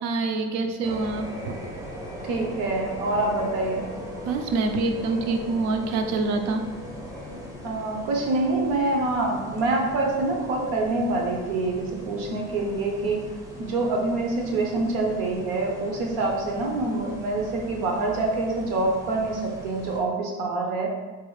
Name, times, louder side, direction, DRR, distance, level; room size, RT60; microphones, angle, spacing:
voice 1, 0.0-1.6 4.2-6.7, right 3 dB, 60° right, 6 dB, 0.5 m, -26 dB
sound 1, 0.8-20.0, equal, 10° right, 0.5 m, -40 dB
voice 2, 2.3-3.8 7.6-13.2 13.6-20.9, right 2 dB, 80° right, 1 dB, 0.9 m, -26 dB
4.0 x 2.4 x 3.1 m, 1.3 s
cardioid pair, 155°, 31 cm